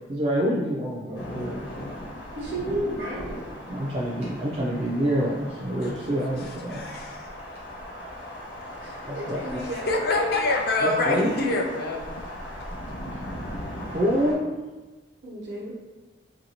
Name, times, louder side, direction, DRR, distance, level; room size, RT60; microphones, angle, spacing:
voice 1, 0.1-1.8 3.7-6.9 9.0-9.4 10.8-11.3 13.9-14.5, equal, 30° right, -5 dB, 0.3 m, -27 dB
sound 1, 1.1-14.3, equal, 85° left, 1.0 m, -38 dB
voice 2, 2.3-3.3 6.9-7.0 8.8-10.1 13.1-13.2 15.2-15.7, right 1 dB, 65° right, -5 dB, 0.9 m, -33 dB
voice 3, 6.7-7.2 9.9-12.4 13.2-13.6, left 2 dB, 55° left, 1 dB, 0.4 m, -26 dB
3.1 x 2.6 x 2.8 m, 1.2 s
head